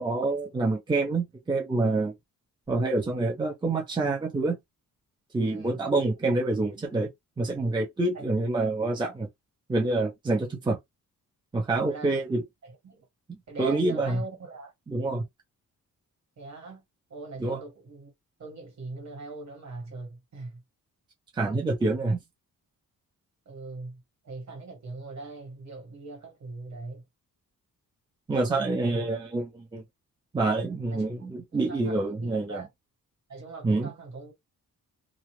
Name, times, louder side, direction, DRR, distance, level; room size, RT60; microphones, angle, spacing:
voice 1, 0.0-2.1 2.7-4.6 5.3-7.1 7.4-9.3 9.7-10.8 11.5-12.4 13.6-14.2 14.9-15.2 17.4-17.6 21.4-22.2 28.3-29.8 30.3-32.6 33.6-33.9, right 2 dB, 15° right, 0.6 m, -27 dB
voice 2, 11.8-12.1 12.6-13.0 13.5-14.7 16.4-16.8 17.1-18.1 18.4-20.6 23.4-24.0 24.2-27.0 28.3-29.0 30.9-31.1 31.5-32.7 33.3-34.3, right 3 dB, 50° right, 1.5 m, -41 dB
2.4 x 2.4 x 3.1 m
wide cardioid pair, 125°, 35 cm